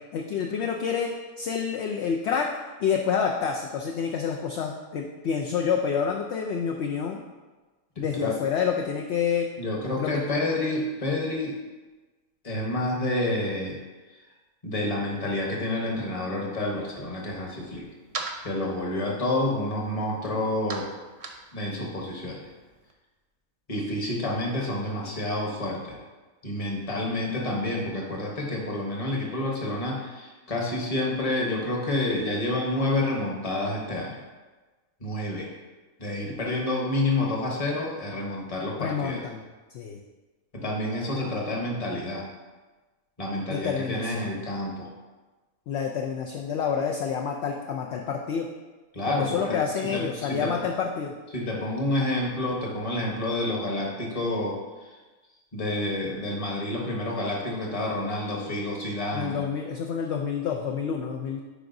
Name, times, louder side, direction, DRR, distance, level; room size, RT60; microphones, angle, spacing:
voice 1, 0.1-1.1 1.4-2.5 2.8-7.2 8.0-9.5 10.0-10.2 38.8-39.4 39.7-40.0 43.5-44.3 45.7-48.5 49.2-51.1 59.1-61.4, left 6 dB, 65° left, 1 dB, 0.7 m, -28 dB
voice 2, 8.0-8.3 9.6-11.5 12.4-13.8 14.6-17.9 18.4-20.9 21.5-22.4 23.7-26.0 26.4-34.2 35.0-35.5 36.0-39.2 40.5-42.3 43.2-44.9 48.9-49.6 49.8-50.5 51.3-54.9 55.5-59.4, left 1 dB, 30° left, -1 dB, 1.0 m, -29 dB
sound 1, 17.2-22.9, right 3 dB, 60° right, 0.3 m, -42 dB
9.9 x 4.7 x 2.6 m, 1.3 s
omnidirectional pair, 1.5 m